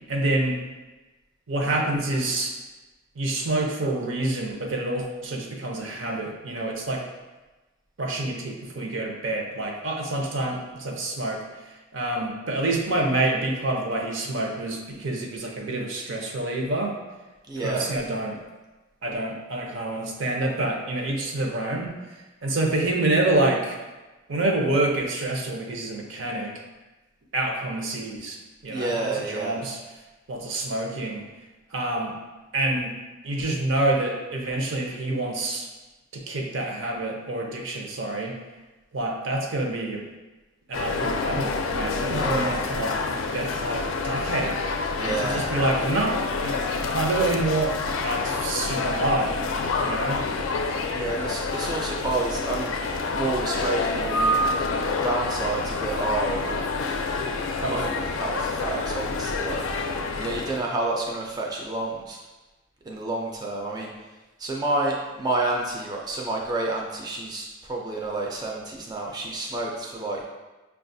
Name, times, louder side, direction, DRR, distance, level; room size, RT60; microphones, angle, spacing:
voice 1, 0.1-0.6 1.5-2.5 3.2-7.0 8.0-17.0 17.6-18.4 19.0-22.0 22.4-23.8 24.3-26.5 27.3-29.8 30.3-31.2 31.7-32.2 32.5-32.9 33.2-35.7 36.1-38.3 38.9-40.0 40.7-44.6 45.0-49.3 49.8-50.2 57.6-57.8, right 2 dB, 70° right, 1 dB, 0.6 m, -27 dB
voice 2, 17.5-17.9 28.7-29.6 41.9-42.6 45.0-45.4 50.9-56.6 57.7-59.6 60.2-62.2 62.9-63.9 64.4-70.2, right 2 dB, 20° right, -2 dB, 0.4 m, -29 dB
sound 1, 40.7-60.6, left 3 dB, 85° left, 0.4 m, -28 dB
5.9 x 2.3 x 2.6 m, 1.2 s
head